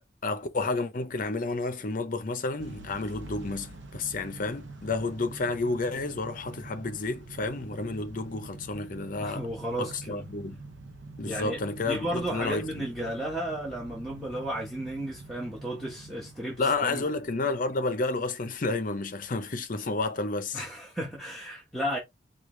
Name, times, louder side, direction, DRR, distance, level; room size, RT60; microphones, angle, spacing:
voice 1, 0.2-9.5 9.8-10.6 11.2-12.9 16.6-20.6, left 3 dB, 45° left, 0.6 m, -31 dB
Motor vehicle (road) / Engine starting / Accelerating revving vroom, 2.6-17.6, right 2 dB, 90° right, 0.7 m, -45 dB
voice 2, 9.2-10.2 11.2-17.0 20.5-22.0, right 1 dB, ahead, 1.1 m, -34 dB
4.8 x 2.4 x 3.2 m
head